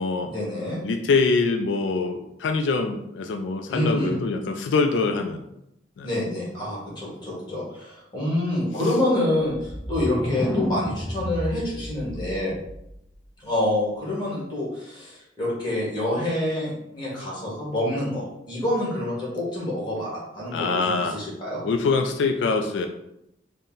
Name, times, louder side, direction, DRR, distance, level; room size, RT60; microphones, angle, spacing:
voice 1, 0.2-0.8 3.7-4.2 6.0-12.5 13.4-21.6, left 1 dB, 25° left, -6 dB, 1.5 m, -27 dB
voice 2, 0.8-5.4 6.0-6.1 20.5-21.2 21.6-22.9, left 4 dB, 85° left, 6 dB, 0.3 m, -24 dB
sound 1, 9.5-13.2, equal, ahead, 0.3 m, -31 dB
4.0 x 2.1 x 3.8 m, 0.82 s
head